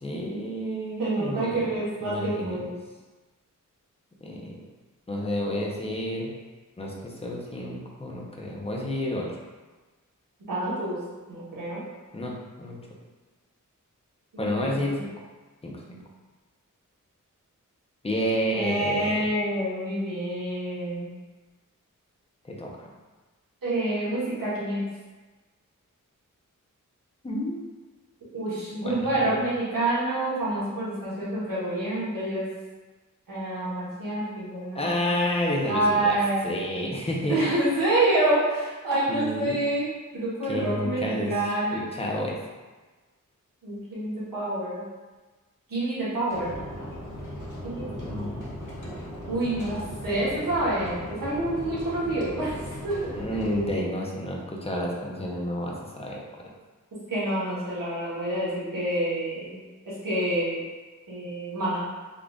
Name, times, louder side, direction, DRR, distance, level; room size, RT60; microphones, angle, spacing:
voice 1, 0.0-1.7 2.0-2.6 4.2-4.6 5.1-6.3 6.8-9.4 12.1-12.3 12.6-12.8 14.4-15.1 15.6-16.0 18.0-19.2 22.4-22.9 27.2-27.6 28.8-29.3 34.7-36.2 36.4-37.4 39.1-39.6 40.5-41.3 41.7-42.4 47.8-48.5 53.2-56.2, equal, 20° left, -2 dB, 0.7 m, -30 dB
voice 2, 1.0-2.7 10.5-11.0 11.3-11.8 14.3-15.1 18.5-21.1 23.6-24.8 28.3-32.5 33.3-34.9 35.6-36.5 37.3-39.9 40.1-41.8 43.6-44.8 45.7-46.5 47.6-48.4 49.3-52.6 52.8-53.1 53.4-53.9 57.1-59.6 59.8-60.6 61.1-61.8, right 1 dB, 85° right, -9 dB, 1.4 m, -27 dB
sound 1, 46.3-53.7, equal, 65° left, 1.0 m, -38 dB
3.8 x 2.4 x 3.5 m, 1.3 s
wide cardioid pair, 105°, 32 cm